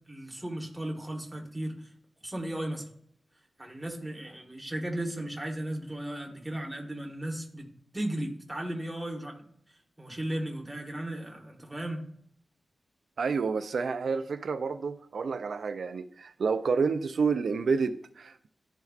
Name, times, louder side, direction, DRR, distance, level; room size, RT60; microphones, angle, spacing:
voice 1, 0.1-1.9 2.2-2.9 3.6-7.7 7.9-9.4 10.0-12.1, right 1 dB, 10° right, 1.3 m, -35 dB
voice 2, 13.2-18.5, right 5 dB, 75° right, 0.3 m, -29 dB
12.0 x 4.5 x 2.4 m
wide cardioid pair, 165°, 0 cm